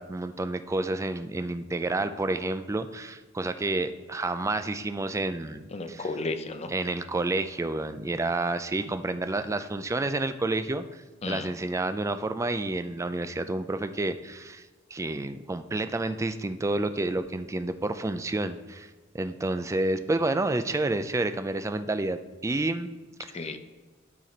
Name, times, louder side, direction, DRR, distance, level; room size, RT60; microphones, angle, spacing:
voice 1, 0.0-6.1 6.7-22.9 23.2-23.5, right 2 dB, 15° right, 10 dB, 0.4 m, -30 dB
voice 2, 5.7-6.7 11.2-11.5 23.3-23.6, left 3 dB, 35° left, 9 dB, 0.6 m, -33 dB
12.0 x 4.1 x 4.3 m, 1.3 s
head